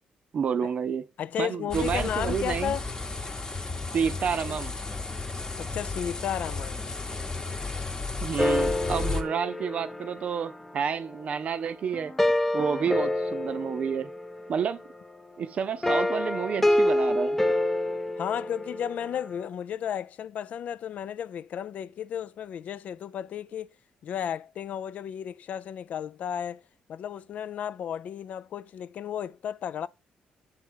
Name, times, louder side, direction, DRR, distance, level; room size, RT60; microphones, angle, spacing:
voice 1, 0.3-1.0 1.4-2.8 3.9-4.8 8.2-12.1 12.5-14.1 14.5-14.8 15.4-17.4, right 7 dB, 55° right, 0.6 m, -29 dB
voice 2, 1.2-2.8 5.6-6.9 18.2-23.7 24.0-26.6 26.9-29.9, left 9 dB, 65° left, 0.4 m, -33 dB
sound 1, 1.7-9.2, left 3 dB, 25° left, 1.0 m, -33 dB
sound 2, 8.4-11.4 11.9-14.7 15.8-19.1, left 1 dB, 10° left, 0.6 m, -27 dB
7.2 x 3.6 x 4.4 m
cardioid pair, 95°, 3 cm